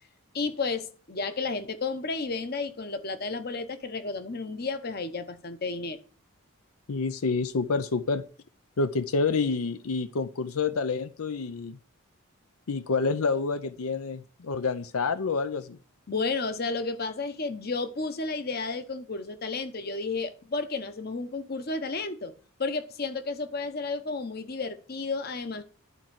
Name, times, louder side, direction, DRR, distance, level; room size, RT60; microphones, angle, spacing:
voice 1, 0.3-6.0 16.1-22.3 22.6-25.6, left 3 dB, 45° left, 0.9 m, -32 dB
voice 2, 6.9-8.2 8.8-11.8 12.7-15.8, left 4 dB, 80° left, 0.6 m, -28 dB
11.5 x 4.4 x 7.5 m
head